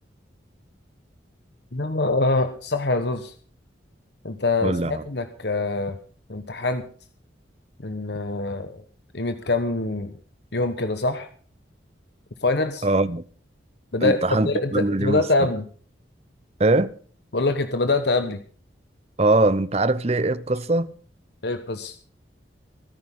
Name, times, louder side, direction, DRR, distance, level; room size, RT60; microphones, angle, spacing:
voice 1, 1.7-3.3 4.2-6.0 6.3-6.8 7.8-8.8 9.1-10.1 10.5-11.3 12.4-12.9 13.9-15.6 17.3-18.4 21.4-21.9, left 2 dB, 60° left, 1.2 m, -24 dB
voice 2, 4.6-5.0 12.8-13.2 14.0-15.3 16.6-16.9 19.2-20.9, right 2 dB, 35° right, 0.8 m, -21 dB
23.5 x 10.5 x 3.8 m
head